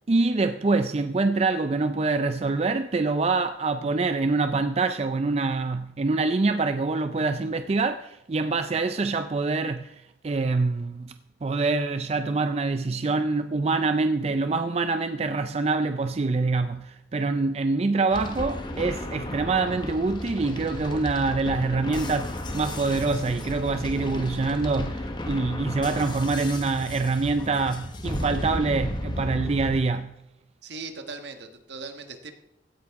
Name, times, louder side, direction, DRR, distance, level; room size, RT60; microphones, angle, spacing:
voice 1, 0.1-11.1 11.4-30.2, right 3 dB, 35° right, 0.4 m, -25 dB
sound 1, 18.1-29.8, left 1 dB, 25° left, 1.1 m, -34 dB
voice 2, 30.6-32.3, right 4 dB, 65° right, 1.4 m, -39 dB
16.5 x 13.0 x 3.6 m
head